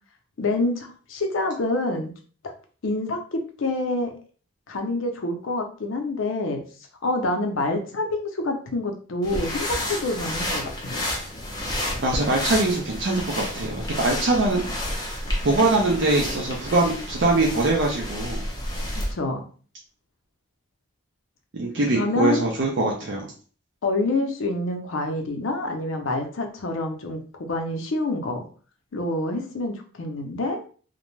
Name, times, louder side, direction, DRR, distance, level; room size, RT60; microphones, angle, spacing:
voice 1, 0.4-2.1 2.8-4.2 4.7-6.6 7.0-11.1 18.9-19.4 21.9-22.5 23.8-28.4 28.9-30.6, left 2 dB, 75° left, 4 dB, 0.5 m, -27 dB
sound 1, 9.2-19.1, left 1 dB, 20° left, 0.6 m, -30 dB
voice 2, 12.0-14.6 15.0-18.4 21.5-23.3, right 2 dB, 60° right, -2 dB, 0.5 m, -23 dB
2.5 x 2.2 x 3.1 m, 0.41 s
head